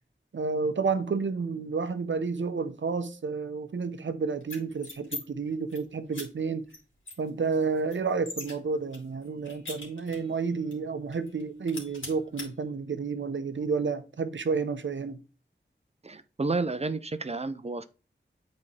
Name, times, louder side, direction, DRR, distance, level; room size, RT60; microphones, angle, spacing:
voice 1, 0.3-6.7 7.2-15.2, right 5 dB, 75° right, 0.7 m, -30 dB
sound 1, 4.4-5.2 5.5-5.8 6.1-6.3 6.7-6.8 7.1-8.5 8.9-10.3 10.7-10.8 11.1-11.4 11.7-12.5, left 2 dB, 85° left, 2.5 m, -41 dB
voice 2, 16.0-17.9, right 3 dB, 35° right, 0.6 m, -31 dB
8.5 x 4.2 x 3.2 m
wide cardioid pair, 60°, 20 cm